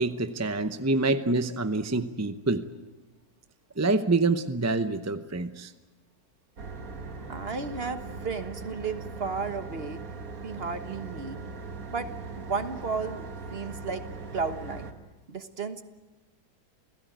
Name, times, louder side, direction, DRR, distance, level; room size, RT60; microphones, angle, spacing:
voice 1, 0.0-2.7 3.8-5.7, right 3 dB, 20° right, 10 dB, 0.5 m, -26 dB
sound 1, 6.6-14.9, right 4 dB, 60° right, 2.1 m, -40 dB
voice 2, 7.2-10.0 10.4-11.4 11.9-12.1 12.4-14.0 14.3-14.9 15.3-15.8, right 4 dB, 40° right, 9 dB, 1.4 m, -33 dB
29.0 x 17.0 x 9.4 m, 1.2 s
omnidirectional pair, 1.7 m